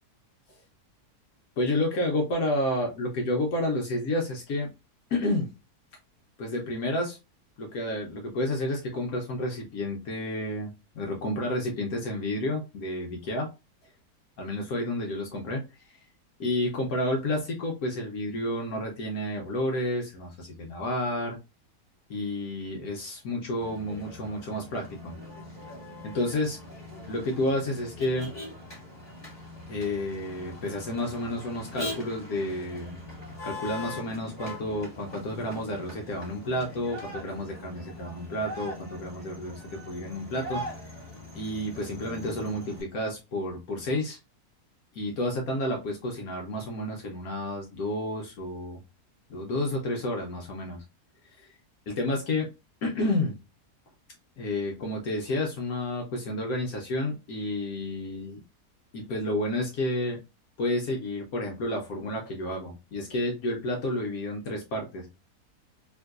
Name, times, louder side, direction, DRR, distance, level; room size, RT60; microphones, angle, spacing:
voice 1, 1.6-4.7 5.1-5.5 6.4-7.2 7.6-13.5 14.4-16.0 16.4-21.4 22.1-25.1 26.0-26.6 27.1-28.3 29.7-33.0 33.4-40.6 41.3-44.2 44.9-48.8 49.3-50.8 51.4-51.5 51.9-52.5 52.8-53.4 54.4-58.4 58.9-60.2 60.6-65.1, left 1 dB, 65° left, 0 dB, 1.1 m, -30 dB
Motor vehicle (road), 23.6-42.8, left 1 dB, 15° left, 1.5 m, -42 dB
3.7 x 2.5 x 2.4 m, 0.27 s
omnidirectional pair, 1.7 m